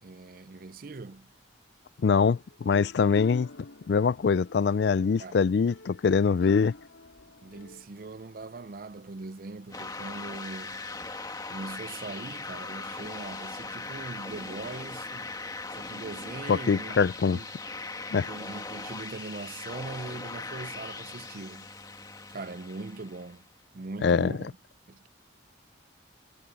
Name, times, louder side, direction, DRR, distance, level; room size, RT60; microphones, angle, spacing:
voice 1, 0.0-1.3 5.2-5.4 7.4-10.8 11.5-15.3 15.7-17.5 18.1-21.7 22.3-23.4 23.7-24.5 24.9-25.1, right 3 dB, 45° right, 0.5 m, -41 dB
voice 2, 2.0-3.5 3.9-6.7 16.5-17.4 18.1-18.3 24.0-24.3, left 5 dB, 55° left, 0.3 m, -23 dB
sound 1, 2.4-7.9, left 2 dB, 85° left, 4.4 m, -46 dB
sound 2, 9.7-23.4, left 3 dB, 20° left, 1.9 m, -39 dB
head